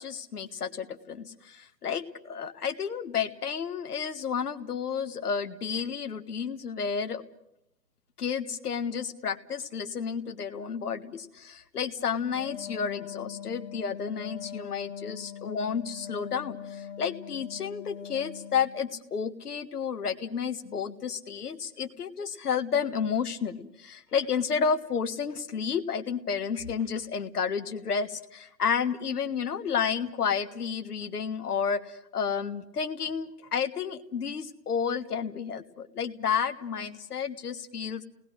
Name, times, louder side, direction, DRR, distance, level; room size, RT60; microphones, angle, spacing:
voice 1, 0.0-7.2 8.2-38.0, left 6 dB, 65° left, 9 dB, 1.5 m, -31 dB
Wind instrument woodwind instrument, 12.3-18.8, left 8 dB, 25° left, 3.4 m, -42 dB
28.5 x 19.5 x 6.4 m, 0.81 s
hypercardioid pair, 165°, 50 cm